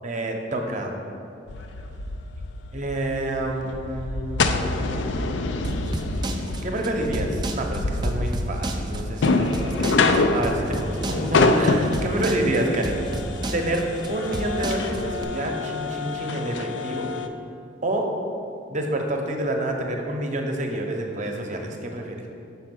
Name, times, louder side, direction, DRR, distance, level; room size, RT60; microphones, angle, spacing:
voice 1, 0.0-1.0 2.7-5.1 6.6-10.0 10.3-13.0 13.5-13.8 14.1-17.1 17.8-18.1 18.7-22.2, right 1 dB, 45° right, 2 dB, 0.7 m, -28 dB
sound 1, 1.5-17.3, left 3 dB, 80° left, 0.4 m, -26 dB
sound 2, 5.6-15.2, right 1 dB, 25° right, 0.4 m, -31 dB
5.7 x 4.5 x 6.0 m, 2.7 s
head